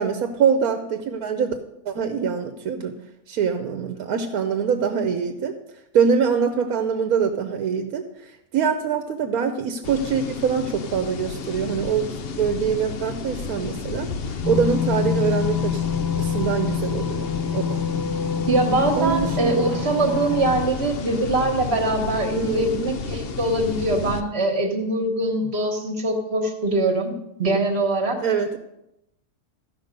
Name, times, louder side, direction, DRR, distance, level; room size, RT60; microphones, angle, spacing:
voice 1, 0.0-1.5 1.9-2.9 3.3-5.5 5.9-8.0 8.5-12.1 12.3-14.1 14.5-15.8 16.2-17.8 19.0-19.5 20.1-20.2 22.3-22.8 28.2-28.6, right 6 dB, 80° right, 7 dB, 1.2 m, -24 dB
sound 1, 9.8-24.2, left 5 dB, 55° left, 0.7 m, -32 dB
sound 2, 14.4-20.7, left 7 dB, 25° left, 0.5 m, -26 dB
voice 2, 18.5-28.2, right 2 dB, 45° right, 4 dB, 1.5 m, -23 dB
13.5 x 5.6 x 5.2 m, 0.86 s
omnidirectional pair, 1.5 m